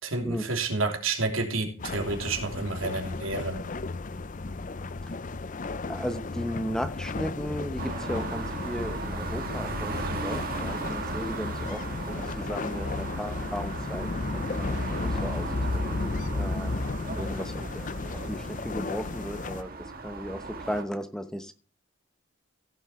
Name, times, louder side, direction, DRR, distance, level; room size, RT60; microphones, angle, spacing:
voice 1, 0.0-3.6, right 3 dB, 85° right, 2.9 m, -30 dB
sound 1, 1.8-19.6, left 3 dB, 40° left, 0.6 m, -33 dB
voice 2, 5.9-14.1 14.5-15.5 15.7-16.0 16.4-16.7 17.1-17.5 18.3-19.7 20.0-21.5, equal, 5° left, 0.9 m, -35 dB
sound 2, 7.8-20.8, right 4 dB, 45° right, 2.1 m, -38 dB
16.0 x 7.4 x 4.3 m
head